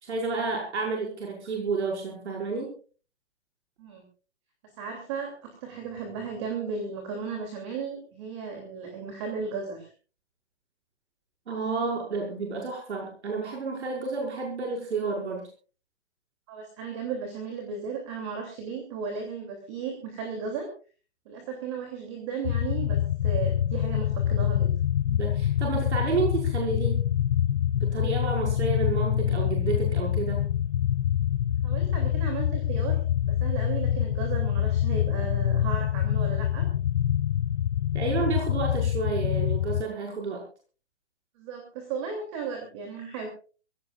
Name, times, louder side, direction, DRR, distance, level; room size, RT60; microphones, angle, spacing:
voice 1, 0.0-2.7 11.5-15.5 25.1-27.0 27.7-30.5 37.9-40.4, right 4 dB, 75° right, 0 dB, 6.0 m, -30 dB
voice 2, 4.7-9.9 16.5-20.7 21.2-24.7 31.6-33.0 33.3-36.7 41.4-43.3, right 5 dB, 25° right, 3 dB, 3.0 m, -35 dB
sound 1, 22.4-39.8, left 11 dB, 90° left, 0.7 m, -26 dB
24.0 x 17.0 x 2.5 m, 0.37 s
hypercardioid pair, 180°, 34 cm